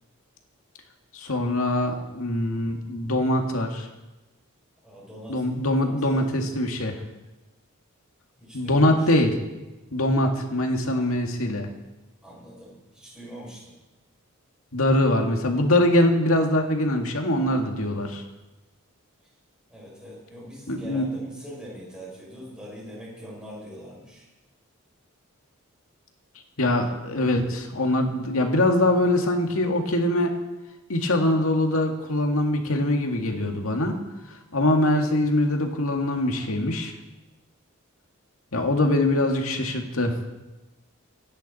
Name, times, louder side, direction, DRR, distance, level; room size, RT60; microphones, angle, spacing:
voice 1, 1.1-3.9 5.3-7.0 8.5-9.4 9.9-11.7 14.7-18.2 20.7-21.1 26.6-30.3 30.9-34.0 34.3-36.9 38.5-40.1, left 1 dB, 80° left, 3 dB, 2.1 m, -23 dB
voice 2, 4.8-6.2 8.4-9.1 12.2-13.7 19.7-24.2 39.1-39.2, equal, 5° right, -6 dB, 6.6 m, -42 dB
25.0 x 10.0 x 4.3 m, 1.1 s
head